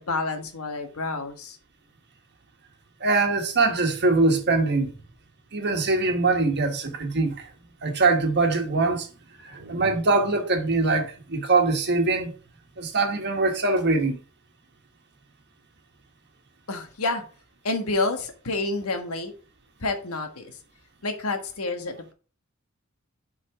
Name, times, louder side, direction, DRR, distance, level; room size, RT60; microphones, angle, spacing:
voice 1, 0.0-1.6 16.7-17.2 17.6-19.3 19.8-20.6 21.0-22.1, left 2 dB, 75° left, 1.3 m, -29 dB
voice 2, 3.0-4.9 5.5-7.5 7.8-9.1 9.4-12.3 12.8-14.2, right 3 dB, 55° right, 1.4 m, -23 dB
7.2 x 4.2 x 4.5 m
head